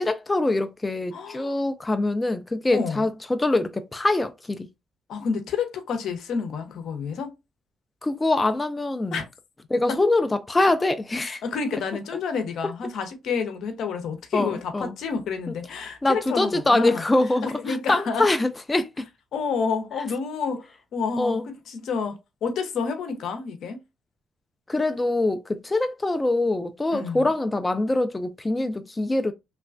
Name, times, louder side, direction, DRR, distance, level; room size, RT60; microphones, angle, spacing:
voice 1, 0.0-4.7 8.0-9.2 9.7-11.4 14.3-14.9 16.0-19.0 21.2-21.4 24.7-29.3, left 2 dB, 20° left, 0.3 m, -24 dB
voice 2, 1.1-1.5 2.7-3.0 5.1-7.3 9.1-9.3 9.9-10.0 11.2-17.0 17.4-18.3 19.3-23.8 26.9-27.3, left 5 dB, 75° left, 0.7 m, -29 dB
3.1 x 2.2 x 2.4 m
cardioid pair, 90°, 0 cm